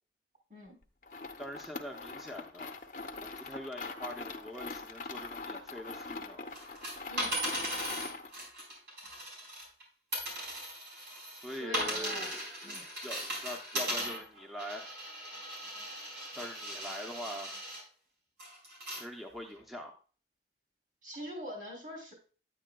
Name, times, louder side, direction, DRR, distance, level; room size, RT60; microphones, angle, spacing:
sound 1, 1.0-8.4, left 3 dB, 45° left, 0.7 m, -42 dB
voice 1, 1.4-2.8 3.2-6.4 11.4-14.9 16.4-17.5 18.9-20.0, equal, ahead, 1 dB, 0.6 m, -43 dB
sound 2, 6.5-9.8 10.1-17.8 18.4-19.0 19.6-19.7, equal, 90° right, 4.2 m, -38 dB
voice 2, 11.5-12.4 12.6-12.9 21.0-22.1, equal, 45° right, 0 dB, 3.1 m, -44 dB
9.9 x 8.8 x 2.3 m, 0.38 s
head